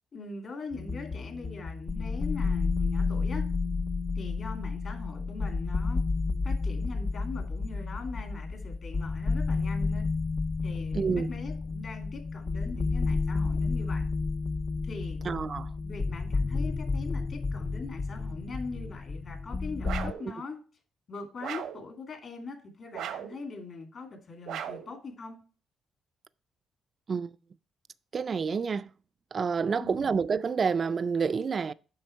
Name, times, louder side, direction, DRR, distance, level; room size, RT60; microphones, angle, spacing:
voice 1, 0.1-3.4 4.2-6.0 6.4-10.0 10.6-14.1 14.8-15.2 15.8-20.6 21.1-25.4 29.8-30.1, left 3 dB, 50° left, 2.5 m, -41 dB
sound 1, 0.7-20.1, left 4 dB, 35° left, 0.3 m, -31 dB
voice 2, 10.9-11.3 15.2-15.7 27.1-27.4 28.1-28.9 29.3-31.7, right 5 dB, 40° right, 0.3 m, -28 dB
sound 2, 19.8-20.3 21.4-21.9 22.9-23.4 24.5-24.9, right 9 dB, 85° right, 0.9 m, -37 dB
7.8 x 5.7 x 4.5 m
cardioid pair, 90°, 0 cm